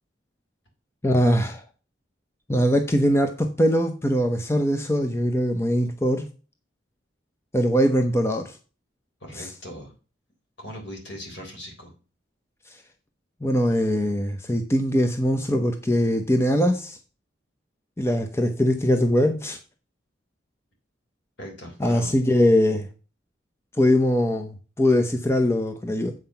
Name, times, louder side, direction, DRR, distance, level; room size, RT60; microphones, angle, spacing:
voice 1, 1.0-1.6 2.5-6.3 7.5-8.6 9.4-9.5 13.4-17.0 18.0-19.6 21.8-22.9 23.8-26.1, equal, 15° left, 0.7 m, -22 dB
voice 2, 9.2-9.9 10.6-11.9 21.4-22.1, equal, 65° left, 3.8 m, -39 dB
8.0 x 5.7 x 5.7 m
head